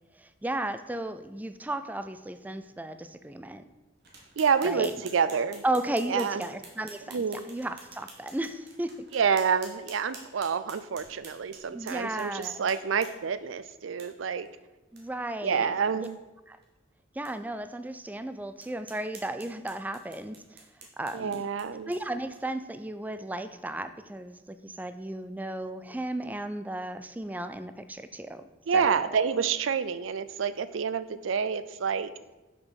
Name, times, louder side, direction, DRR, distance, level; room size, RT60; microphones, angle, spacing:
voice 1, 0.2-3.6 4.6-4.9 5.6-8.9 11.7-12.6 14.9-16.1 16.5-16.6 17.2-20.4 21.0-21.4 21.9-28.4 28.7-29.1, right 1 dB, 10° right, 10 dB, 0.4 m, -34 dB
sound 1, 4.0-13.4 14.0-14.1 14.5-14.6 15.0-15.1 15.4-15.5 15.9-16.1 16.6-16.7 17.3-17.4 17.9-18.0 18.6-22.6, right 4 dB, 60° right, 1.8 m, -50 dB
voice 2, 4.4-5.6 6.1-6.4 7.1-7.4 9.1-14.5 15.4-16.2 21.1-21.9 28.7-32.1, right 6 dB, 90° right, 14 dB, 0.5 m, -28 dB
6.3 x 6.1 x 6.3 m, 1.1 s
head